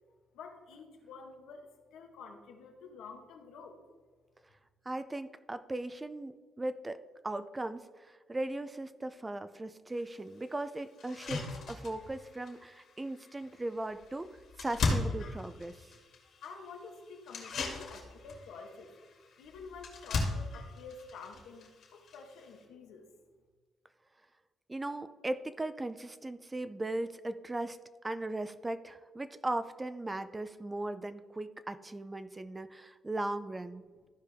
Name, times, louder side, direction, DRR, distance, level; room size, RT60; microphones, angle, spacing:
voice 1, 0.3-3.8 15.9-16.0 16.4-18.9 19.4-23.1, left 4 dB, 85° left, 3 dB, 1.3 m, -49 dB
voice 2, 4.9-14.3 14.6-15.9 24.7-27.8 28.0-33.8, right 2 dB, 20° right, 12 dB, 0.5 m, -38 dB
sound 1, 10.0-10.1 10.5-10.6 11.0-22.6, left 3 dB, 65° left, 2.2 m, -39 dB
14.0 x 5.0 x 3.5 m, 1.4 s
cardioid pair, 90°, 0 cm